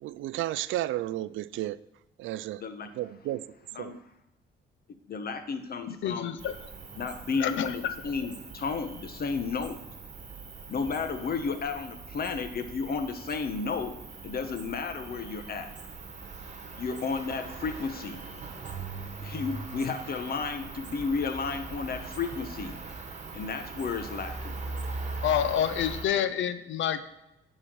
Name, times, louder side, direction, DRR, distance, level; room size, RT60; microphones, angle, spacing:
voice 1, 0.0-1.8 2.2-2.6 2.9-3.4 3.8-4.0, right 14 dB, 80° right, 17 dB, 0.4 m, -32 dB
voice 2, 5.1-6.4 7.0-9.8 10.7-14.0 14.2-15.7 16.8-18.2 19.2-22.8 23.3-24.6, left 5 dB, 50° left, 8 dB, 1.1 m, -33 dB
voice 3, 5.9-6.6 7.4-7.9 19.9-20.0 25.2-27.0, left 9 dB, 75° left, 12 dB, 0.7 m, -28 dB
Cricket, 6.4-26.0, right 3 dB, 35° right, 1.6 m, -41 dB
9.9 x 4.4 x 6.2 m, 0.93 s
cardioid pair, 90°, 20 cm